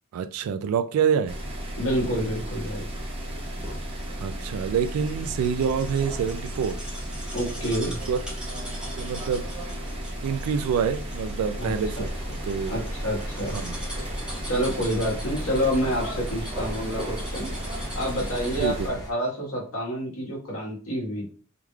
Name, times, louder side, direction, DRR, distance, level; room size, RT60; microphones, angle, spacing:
voice 1, 0.1-1.4 4.2-6.8 7.6-7.8 8.1-8.2 9.0-9.5 10.2-12.1 12.4-12.7 13.5-13.8 18.6-18.9, right 7 dB, 90° right, 0.3 m, -26 dB
sound 1, 1.3-18.9, right 1 dB, 25° right, 0.7 m, -34 dB
voice 2, 1.8-2.9 7.3-8.0 11.6-12.1 12.7-13.6 14.4-21.3, equal, 75° left, 1.4 m, -28 dB
sound 2, 3.7-18.8 19.2-19.3, right 1 dB, 5° right, 1.1 m, -43 dB
sound 3, 11.6-19.1, equal, 20° left, 0.9 m, -39 dB
3.6 x 3.1 x 2.3 m
head